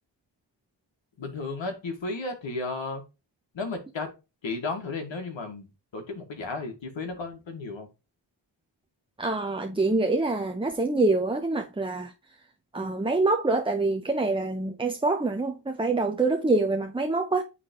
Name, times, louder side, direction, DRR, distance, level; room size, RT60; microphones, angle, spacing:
voice 1, 1.2-3.0 3.5-4.1 4.4-7.9, left 3 dB, 70° left, 2.0 m, -34 dB
voice 2, 9.2-12.1 12.7-17.4, right 2 dB, 10° right, 0.7 m, -25 dB
9.4 x 3.5 x 3.0 m
cardioid pair, 65°, 46 cm